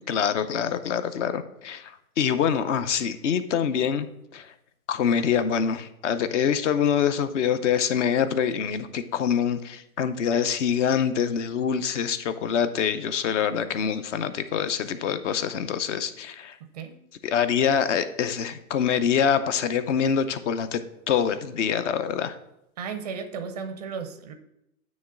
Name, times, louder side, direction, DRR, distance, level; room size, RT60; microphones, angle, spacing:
voice 1, 0.0-4.1 4.3-4.5 4.9-16.6 17.2-20.8 21.1-22.4, left 7 dB, 50° left, 12 dB, 0.7 m, -25 dB
voice 2, 16.6-17.0 22.8-24.3, right 6 dB, 30° right, 9 dB, 0.4 m, -35 dB
9.2 x 3.2 x 5.8 m, 0.83 s
hypercardioid pair, 145°, 45 cm